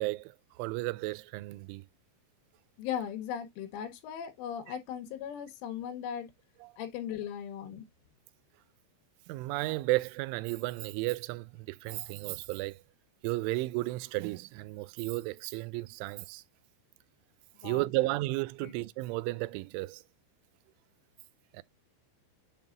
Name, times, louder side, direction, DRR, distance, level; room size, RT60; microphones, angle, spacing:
voice 1, 0.0-1.9 4.7-4.8 6.6-6.7 9.3-12.8 13.2-16.4 17.6-20.0 21.5-21.6, right 21 dB, 85° right, 3.0 m, -33 dB
voice 2, 2.8-6.3 6.8-7.9 17.6-17.9 18.6-18.7, left 9 dB, 85° left, 3.6 m, -38 dB
8.0 x 5.3 x 2.4 m
omnidirectional pair, 5.5 m